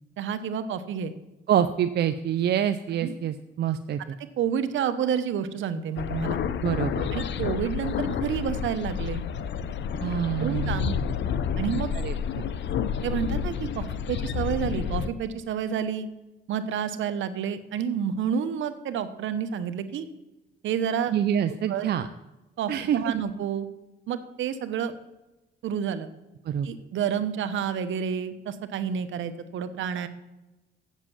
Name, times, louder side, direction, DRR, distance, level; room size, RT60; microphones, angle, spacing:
voice 1, 0.2-1.1 3.0-3.1 4.4-6.4 7.1-9.2 10.4-11.0 11.6-11.9 13.0-16.1 16.5-20.1 20.6-21.1 21.5-21.9 22.6-23.7 24.1-24.9 25.6-26.1 26.6-30.1, right 8 dB, 75° right, 11 dB, 1.0 m, -29 dB
voice 2, 1.5-4.2 6.6-7.1 10.0-10.8 12.0-12.1 21.1-22.1 22.7-23.0 26.4-26.7, right 9 dB, 55° right, 10 dB, 0.5 m, -26 dB
sound 1, 6.0-15.1, left 7 dB, 65° left, 0.7 m, -29 dB
8.2 x 7.4 x 7.2 m, 1.0 s
cardioid pair, 90°, 20 cm